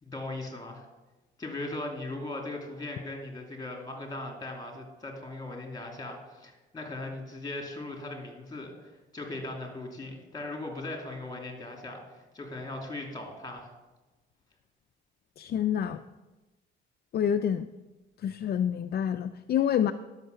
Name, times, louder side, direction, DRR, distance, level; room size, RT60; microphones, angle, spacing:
voice 1, 0.0-0.8 1.4-13.7, left 2 dB, 20° left, 2 dB, 2.8 m, -39 dB
voice 2, 15.4-16.0 17.1-17.7 18.2-19.9, left 9 dB, 50° left, 9 dB, 0.4 m, -27 dB
10.5 x 6.4 x 6.7 m, 1.1 s
cardioid pair, 90°, 20 cm